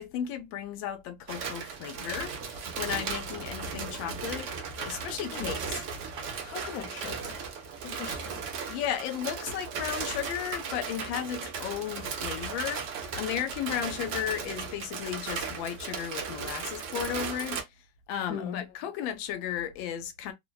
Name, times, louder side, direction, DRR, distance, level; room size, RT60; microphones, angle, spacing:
voice 1, 0.0-5.6 8.7-17.6 18.1-20.3, left 10 dB, 85° left, 1.3 m, -34 dB
sound 1, 1.3-17.6, right 5 dB, 70° right, 0.7 m, -36 dB
voice 2, 6.4-7.4 7.8-8.4 18.3-18.7, left 8 dB, 65° left, 0.9 m, -39 dB
3.1 x 2.1 x 2.2 m
omnidirectional pair, 2.0 m